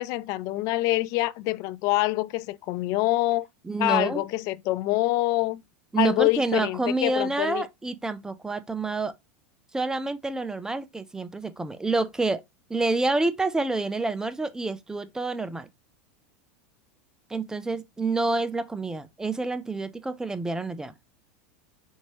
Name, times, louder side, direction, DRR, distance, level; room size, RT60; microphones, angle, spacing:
voice 1, 0.0-3.5 3.8-5.6 6.0-7.7, left 18 dB, 50° left, 0.4 m, -25 dB
voice 2, 3.6-4.2 5.9-9.1 9.7-12.4 12.7-15.7 17.3-20.9, right 3 dB, 10° right, 0.4 m, -28 dB
4.4 x 2.8 x 3.0 m
hypercardioid pair, 105°, 7 cm